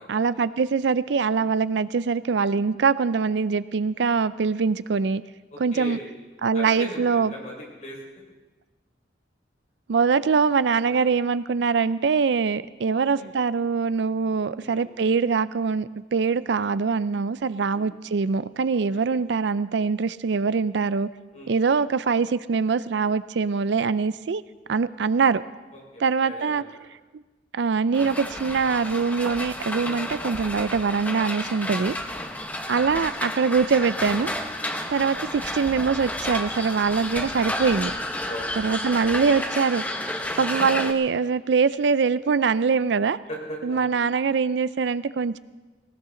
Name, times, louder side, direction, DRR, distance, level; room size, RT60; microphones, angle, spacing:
voice 1, 0.1-5.2 5.6-6.0 6.4-7.3 9.9-21.1 21.5-24.4 24.7-25.4 26.0-26.6 27.1-27.2 27.5-31.9 32.7-34.3 34.9-37.9 38.6-39.8 40.4-43.2 43.6-45.4, right 5 dB, 65° right, 16 dB, 0.4 m, -23 dB
voice 2, 5.5-6.1 6.5-8.0 10.9-11.1 13.2-13.3 14.6-14.9 17.7-17.9 18.7-19.1 21.3-21.6 25.7-26.9 32.1-32.4 34.6-34.8 38.2-38.8 40.1-40.4 43.3-43.9, left 1 dB, 40° left, -2 dB, 4.7 m, -39 dB
sound 1, 27.9-40.9, left 1 dB, 10° left, 0.9 m, -31 dB
19.0 x 18.0 x 3.8 m, 1.2 s
head